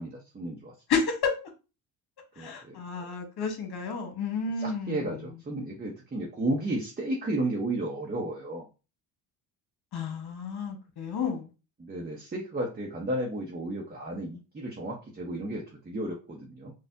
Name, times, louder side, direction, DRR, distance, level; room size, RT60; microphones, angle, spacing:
voice 1, 0.0-0.7 2.4-2.8 4.6-8.6 11.8-16.7, right 1 dB, 20° right, -1 dB, 1.0 m, -33 dB
voice 2, 0.9-1.4 2.4-5.3 9.9-11.5, left 5 dB, 55° left, 4 dB, 1.4 m, -31 dB
4.0 x 2.4 x 2.7 m, 0.31 s
supercardioid pair, 70°, 45 cm